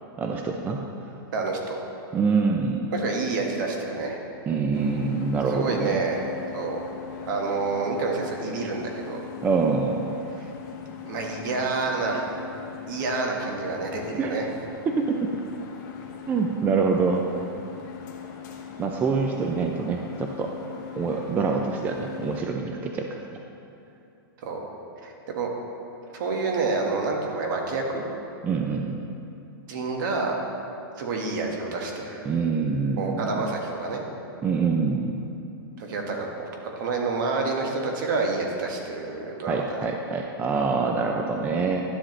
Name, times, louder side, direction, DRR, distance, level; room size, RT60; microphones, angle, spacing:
voice 1, 0.2-0.8 2.1-2.9 4.5-6.0 9.4-10.2 14.2-14.3 14.9-15.3 16.3-17.2 18.8-20.5 21.0-23.2 28.4-29.0 32.3-33.5 34.4-35.2 39.5-41.8, right 4 dB, 15° right, 2 dB, 0.4 m, -25 dB
voice 2, 1.3-1.8 2.9-4.2 5.5-6.2 6.5-6.8 7.3-9.2 11.0-12.3 12.9-14.5 24.4-24.7 25.0-25.5 26.1-28.0 29.7-30.4 31.0-32.2 33.0-34.0 35.8-39.8, right 3 dB, 55° right, 1 dB, 1.5 m, -28 dB
sound 1, 4.7-22.4, left 8 dB, 50° left, 1.0 m, -40 dB
11.5 x 7.5 x 3.2 m, 2.8 s
hypercardioid pair, 145°, 13 cm